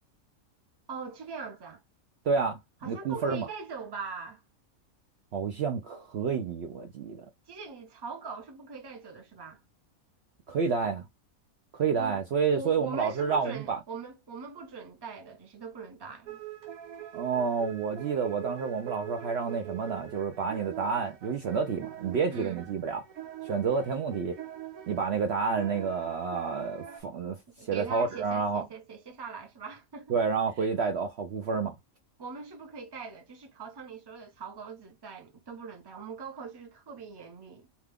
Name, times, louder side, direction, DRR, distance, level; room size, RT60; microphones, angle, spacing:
voice 1, 0.9-1.8 2.8-4.4 7.5-9.6 12.0-12.2 12.5-16.4 22.3-22.6 27.5-30.1 30.6-30.7 32.2-37.7, right 5 dB, 25° right, 0.6 m, -41 dB
voice 2, 2.2-3.5 5.3-7.3 10.5-11.1 11.7-13.8 17.1-23.0 23.4-24.3 24.9-28.7 30.1-31.7, right 5 dB, 60° right, 0.7 m, -29 dB
sound 1, 16.3-27.0, right 10 dB, 85° right, 1.2 m, -44 dB
2.9 x 2.3 x 3.4 m
omnidirectional pair, 1.5 m